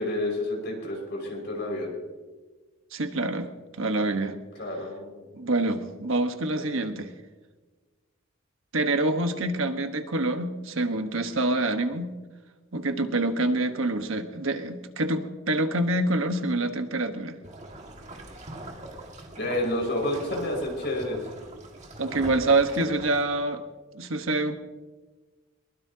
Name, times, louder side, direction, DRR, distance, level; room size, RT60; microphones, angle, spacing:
voice 1, 0.0-1.9 4.6-5.3 19.4-21.2, left 1 dB, 55° left, 0 dB, 5.4 m, -29 dB
voice 2, 2.9-3.5 3.8-4.4 5.3-7.1 8.7-12.1 12.7-17.4 22.0-23.6 23.9-24.6, right 2 dB, 75° right, 6 dB, 1.3 m, -26 dB
sound 1, 17.4-23.2, right 1 dB, 35° right, 1.9 m, -42 dB
22.0 x 20.0 x 2.8 m, 1.3 s
head